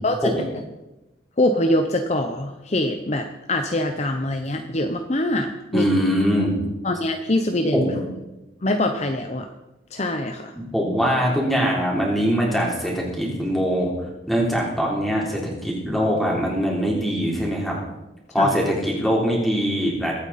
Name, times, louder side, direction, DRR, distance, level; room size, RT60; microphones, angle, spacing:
voice 1, 1.4-5.9 6.8-7.9 8.6-9.5 9.9-10.5 18.4-18.5, left 1 dB, 35° left, 5 dB, 0.7 m, -23 dB
voice 2, 5.7-6.5 7.7-8.0 10.5-17.8 18.3-20.1, equal, ahead, -3 dB, 3.5 m, -22 dB
23.0 x 8.8 x 4.2 m, 0.99 s
head